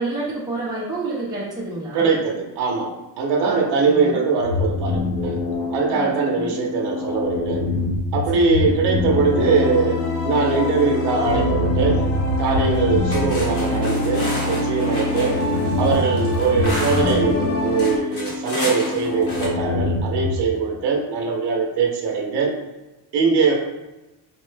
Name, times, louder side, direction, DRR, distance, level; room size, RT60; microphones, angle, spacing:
voice 1, 0.0-2.1 3.4-4.2 5.9-6.6 8.3-8.7, right 2 dB, 10° right, -8 dB, 0.7 m, -29 dB
voice 2, 1.9-2.9 3.2-5.4 5.7-7.7 8.1-12.1 12.4-15.4 15.8-22.6 23.1-23.5, right 4 dB, 65° right, 0 dB, 0.7 m, -21 dB
sound 1, 4.4-20.4, left 3 dB, 85° left, 1.2 m, -26 dB
sound 2, 8.9-18.0, left 1 dB, 70° left, 0.9 m, -25 dB
sound 3, 12.6-12.8 13.1-17.2 17.8-19.5, left 1 dB, 30° left, 0.9 m, -31 dB
4.3 x 2.1 x 3.2 m, 1.0 s
cardioid pair, 175°, 45 cm